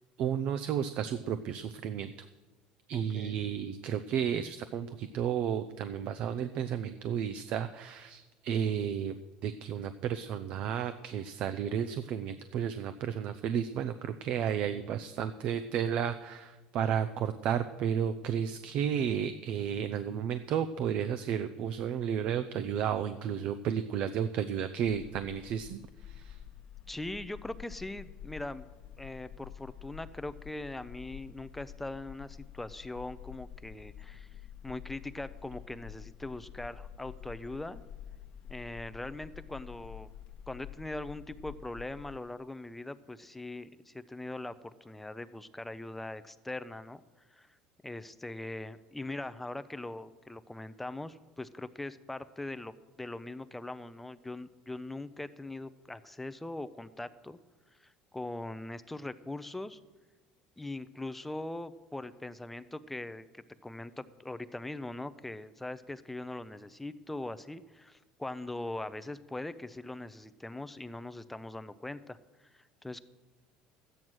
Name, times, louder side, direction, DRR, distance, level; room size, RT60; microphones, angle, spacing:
voice 1, 0.2-2.1 2.9-9.2 9.4-26.4, right 8 dB, 55° right, 10 dB, 0.6 m, -32 dB
voice 2, 2.9-3.4 26.9-28.6 29.0-34.3 34.6-37.8 38.5-40.1 40.5-47.0 47.3-47.5 47.8-52.7 53.0-57.4 57.7-59.8 60.6-73.0, left 2 dB, 5° left, 13 dB, 0.5 m, -41 dB
sound 1, 24.8-42.2, left 9 dB, 45° left, 0.9 m, -48 dB
13.5 x 9.0 x 6.2 m, 1.2 s
cardioid pair, 130°, 3 cm